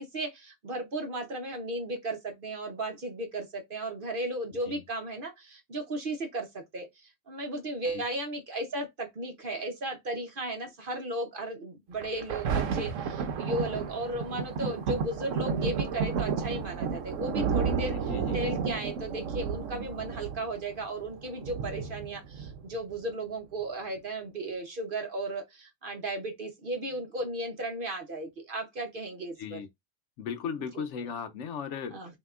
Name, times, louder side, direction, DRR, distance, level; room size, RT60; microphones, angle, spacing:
voice 1, 0.0-17.9 18.3-29.6 31.9-32.2, right 1 dB, 45° right, 0.8 m, -35 dB
Thunder, 12.0-23.0 23.6-23.7, right 6 dB, 70° right, 1.0 m, -32 dB
voice 2, 18.1-18.4 29.4-29.7 30.2-32.0, left 6 dB, 65° left, 0.8 m, -36 dB
5.5 x 2.8 x 2.4 m
omnidirectional pair, 1.5 m